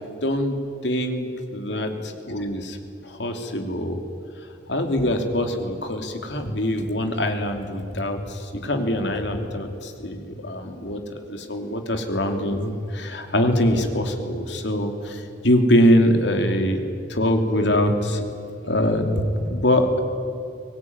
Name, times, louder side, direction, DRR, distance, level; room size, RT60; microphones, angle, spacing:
voice 1, 0.2-0.6 0.8-2.8 3.0-4.0 4.7-16.8 17.1-18.3 18.6-20.0, equal, 75° left, 5 dB, 2.9 m, -23 dB
23.5 x 19.5 x 9.6 m, 2.6 s
head